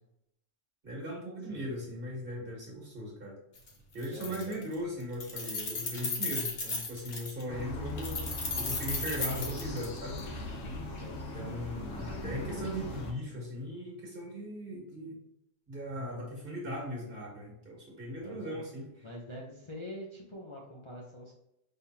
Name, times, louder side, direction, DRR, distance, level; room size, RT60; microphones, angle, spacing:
voice 1, 0.8-3.4 3.9-10.2 11.3-15.2 15.7-18.9, equal, 45° right, -2 dB, 1.8 m, -38 dB
Keys jangling, 3.6-3.7 4.0-4.7 5.0-7.4 8.0-10.2, left 3 dB, 50° left, 1.2 m, -35 dB
voice 2, 4.1-4.6 10.9-11.2 18.2-18.6 19.0-21.3, left 1 dB, 30° left, -4 dB, 0.7 m, -45 dB
sound 1, 7.5-13.1, left 2 dB, 75° left, 1.2 m, -39 dB
5.5 x 3.3 x 2.8 m, 0.79 s
omnidirectional pair, 1.3 m